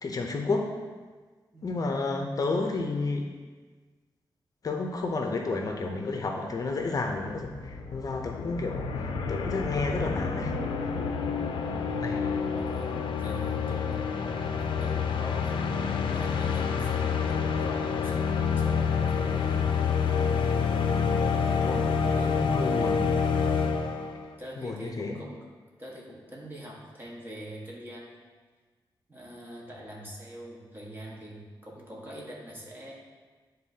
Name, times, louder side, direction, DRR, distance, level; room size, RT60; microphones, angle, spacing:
voice 1, 0.0-0.7 1.6-3.3 4.6-10.5 12.0-12.3 16.8-17.0 21.0-23.1 24.6-25.2, left 3 dB, 45° left, 2 dB, 0.7 m, -31 dB
voice 2, 1.5-2.0 12.5-15.6 16.1-19.7 22.1-22.4 24.1-25.4 25.8-28.1 29.1-32.9, equal, 25° right, -4 dB, 1.5 m, -44 dB
sound 1, 6.8-24.3, left 6 dB, 85° left, 0.5 m, -28 dB
10.0 x 3.9 x 2.8 m, 1.4 s
wide cardioid pair, 100°, 8 cm